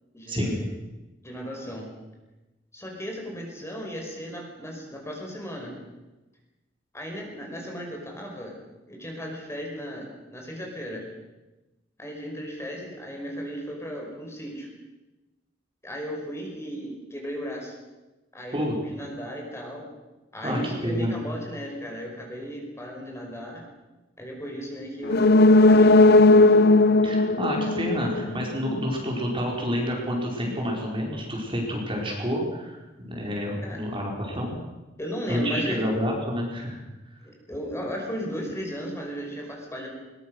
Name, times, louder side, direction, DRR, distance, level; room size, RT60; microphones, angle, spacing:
voice 1, 0.1-0.7 1.2-1.9 2.7-5.7 6.9-8.6 8.9-11.0 12.0-14.7 15.8-17.7 18.3-19.9 20.3-23.6 24.2-25.4 25.6-26.6 33.6-33.8 35.0-35.8 37.2-39.9, equal, 15° left, 0 dB, 5.4 m, -35 dB
voice 2, 20.4-21.1 27.0-34.5 35.3-36.8 37.1-37.2, equal, 30° right, -1 dB, 5.3 m, -29 dB
sound 1, 25.0-28.7 29.1-29.2, left 2 dB, 60° left, 0.7 m, -17 dB
22.0 x 21.5 x 6.5 m, 1.1 s
head